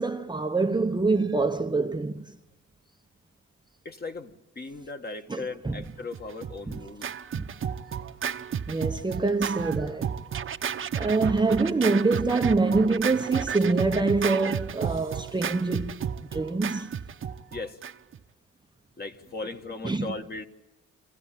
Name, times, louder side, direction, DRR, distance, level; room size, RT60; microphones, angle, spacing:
voice 1, 0.0-2.3 5.3-5.8 6.7-6.8 7.4-7.5 8.7-10.1 11.0-16.0 16.3-16.9 19.8-20.1, right 3 dB, 15° right, 0.8 m, -25 dB
voice 2, 3.9-7.1 17.5-17.8 19.0-20.4, left 3 dB, 30° left, 1.7 m, -37 dB
Scratching (performance technique), 6.1-18.2, right 8 dB, 45° right, 1.0 m, -32 dB
27.0 x 15.5 x 9.1 m
cardioid pair, 90°, 30 cm